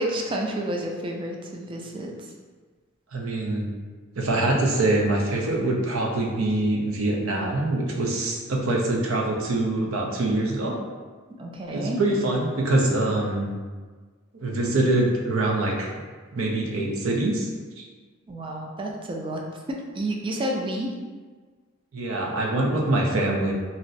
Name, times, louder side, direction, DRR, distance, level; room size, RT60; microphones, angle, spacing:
voice 1, 0.0-2.1 11.4-12.0 18.3-19.4 19.7-20.9, right 1 dB, 25° right, 0 dB, 0.4 m, -30 dB
voice 2, 3.1-3.7 4.2-10.8 11.7-13.6 14.4-15.9 16.3-17.5 17.8-17.9 21.9-23.5, right 2 dB, 80° right, 0 dB, 0.6 m, -24 dB
2.6 x 2.1 x 3.8 m, 1.4 s
head